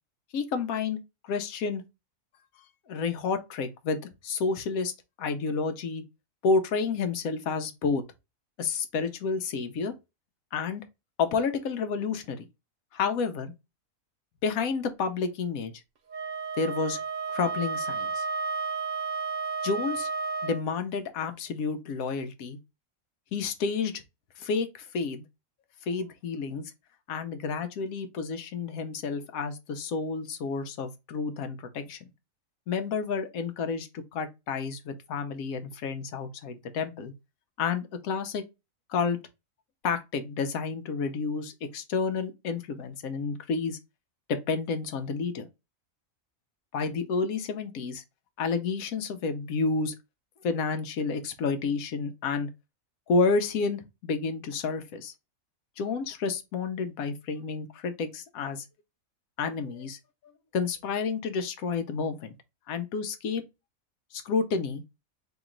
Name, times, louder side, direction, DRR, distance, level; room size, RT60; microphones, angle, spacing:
voice 1, 0.3-1.8 2.9-4.9 5.2-6.0 6.4-8.0 8.6-9.9 10.5-10.8 11.2-12.5 12.9-13.5 14.4-15.7 16.6-17.0 17.3-18.3 19.6-20.1 20.4-22.6 23.3-24.0 24.4-25.2 25.9-26.6 27.1-32.1 32.7-37.1 37.6-38.4 38.9-39.2 39.8-43.8 44.3-45.5 46.7-48.0 48.4-49.9 50.4-52.5 53.1-55.1 55.8-58.6 59.4-60.0 60.5-62.3 62.7-63.4 64.1-64.8, left 4 dB, 85° left, 1.1 m, -30 dB
Wind instrument woodwind instrument, 16.1-20.6, right 4 dB, 70° right, 0.4 m, -32 dB
2.9 x 2.9 x 3.7 m
omnidirectional pair, 1.4 m